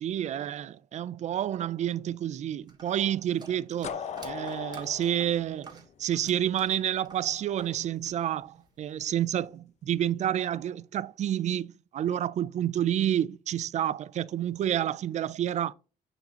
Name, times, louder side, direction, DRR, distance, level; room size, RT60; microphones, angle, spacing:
voice 1, 0.0-15.7, right 11 dB, 50° right, 0.4 m, -29 dB
sound 1, 2.7-7.8 8.0-8.9, right 4 dB, 30° right, 1.4 m, -49 dB
sound 2, 3.8-6.7, left 7 dB, 50° left, 0.6 m, -38 dB
9.4 x 4.3 x 2.9 m
cardioid pair, 155°, 15 cm